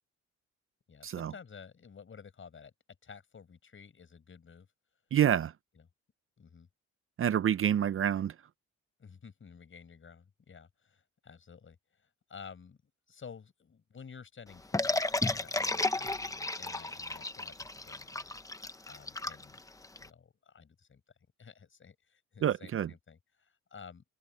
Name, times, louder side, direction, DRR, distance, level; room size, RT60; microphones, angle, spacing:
voice 1, 0.9-2.7 3.0-4.7 5.7-5.9 6.4-6.7 9.0-12.8 13.1-19.6 20.0-21.0 21.4-24.0, left 6 dB, 40° left, 7.3 m, -52 dB
voice 2, 5.1-5.5 7.2-8.3 22.4-22.9, right 10 dB, 45° right, 0.6 m, -27 dB
sound 1, 14.7-20.1, left 2 dB, 10° left, 0.9 m, -33 dB
cardioid pair, 90°, 30 cm